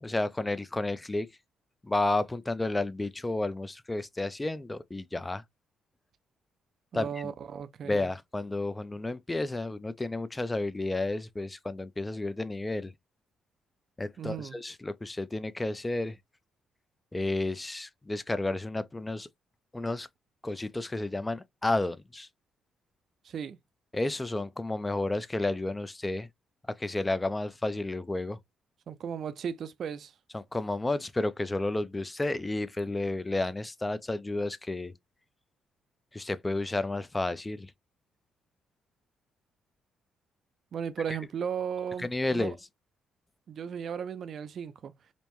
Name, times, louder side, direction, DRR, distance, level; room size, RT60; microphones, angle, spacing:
voice 1, 0.0-1.3 1.8-5.4 6.9-7.3 7.8-12.9 14.0-16.2 17.1-19.3 19.7-20.1 20.4-22.3 23.9-26.3 26.7-28.4 30.3-34.9 36.1-37.7 42.0-42.5, left 2 dB, 15° left, 0.5 m, -31 dB
voice 2, 6.9-8.0 14.2-14.6 23.2-23.6 28.9-30.1 40.7-42.6 43.5-44.9, right 7 dB, 60° right, 0.5 m, -36 dB
5.2 x 2.1 x 3.0 m
cardioid pair, 90°, 0 cm